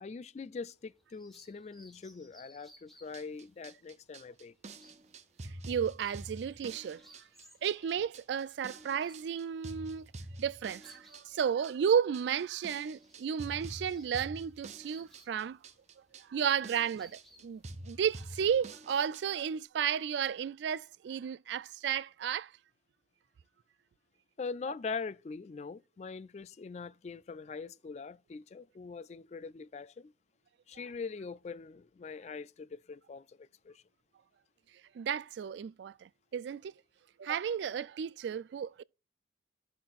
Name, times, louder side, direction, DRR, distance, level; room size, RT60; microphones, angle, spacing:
voice 1, 0.0-4.5 24.4-30.1 30.7-33.8, left 4 dB, 35° left, 0.3 m, -42 dB
sound 1, 0.7-18.4, equal, ahead, 1.2 m, -64 dB
sound 2, 3.0-19.4, right 2 dB, 40° right, 0.6 m, -47 dB
voice 2, 5.4-7.0 7.6-10.1 10.4-15.6 16.3-22.5 34.9-36.7 37.2-38.8, right 8 dB, 70° right, 0.3 m, -33 dB
14.0 x 5.9 x 2.4 m
head